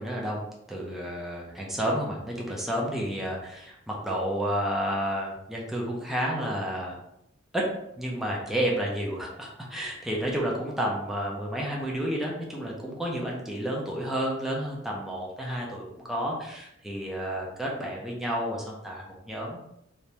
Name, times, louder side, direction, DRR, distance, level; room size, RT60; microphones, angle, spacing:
voice 1, 0.0-6.9 7.5-7.6 8.0-19.7, equal, ahead, -3 dB, 0.6 m, -31 dB
3.4 x 3.0 x 2.8 m, 0.80 s
head